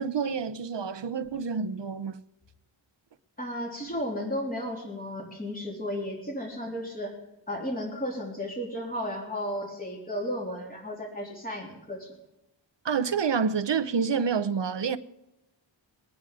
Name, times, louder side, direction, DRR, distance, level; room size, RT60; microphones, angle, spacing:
voice 1, 0.0-2.2 12.8-15.0, right 6 dB, 60° right, 0.9 m, -28 dB
voice 2, 3.4-7.2 7.5-12.1, equal, 20° left, 3.5 m, -34 dB
23.0 x 10.0 x 3.7 m
wide cardioid pair, 105°, 48 cm